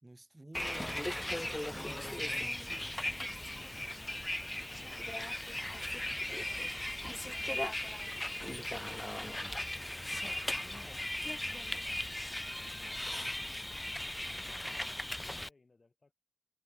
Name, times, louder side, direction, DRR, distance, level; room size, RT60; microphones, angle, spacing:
voice 1, 0.0-3.2 13.3-13.6, right 1 dB, 25° right, 2.3 m, -53 dB
Bus, 0.5-15.5, left 1 dB, 15° left, 0.4 m, -38 dB
voice 2, 4.9-11.0 14.0-16.2, left 3 dB, 50° left, 5.7 m, -67 dB
wide cardioid pair, 100°, 0 cm